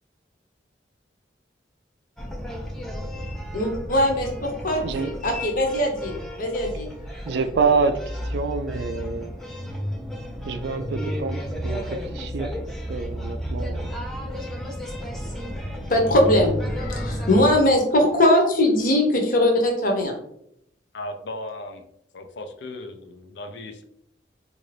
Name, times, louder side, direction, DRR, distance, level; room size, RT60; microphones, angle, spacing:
sound 1, 2.2-17.6, equal, ahead, 0.5 m, -32 dB
voice 1, 3.5-6.9 15.9-20.2, left 1 dB, 50° left, 1 dB, 0.9 m, -21 dB
voice 2, 7.3-8.0 8.2-9.3 10.5-12.5 12.9-13.9, right 4 dB, 65° right, 10 dB, 0.3 m, -26 dB
voice 3, 20.9-21.8 22.1-23.8, left 1 dB, 70° left, 5 dB, 0.5 m, -36 dB
3.8 x 2.5 x 3.2 m, 0.74 s
head